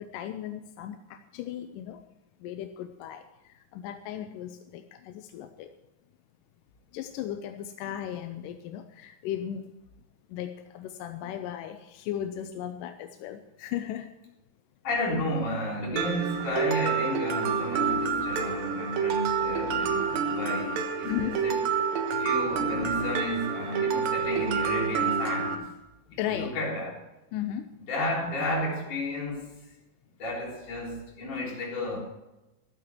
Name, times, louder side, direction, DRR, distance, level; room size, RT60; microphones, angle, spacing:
voice 1, 0.0-2.0 2.4-5.7 6.9-9.7 10.3-14.3 21.0-21.5 26.2-26.6 27.3-27.8, left 11 dB, 75° left, 2.1 m, -36 dB
voice 2, 14.8-21.6 22.1-25.7 26.3-26.9 27.9-29.5 30.2-32.0, left 1 dB, 55° left, 5.3 m, -32 dB
Mallet percussion, 16.0-25.5, right 6 dB, 75° right, 3.0 m, -28 dB
14.0 x 12.5 x 4.5 m
omnidirectional pair, 4.2 m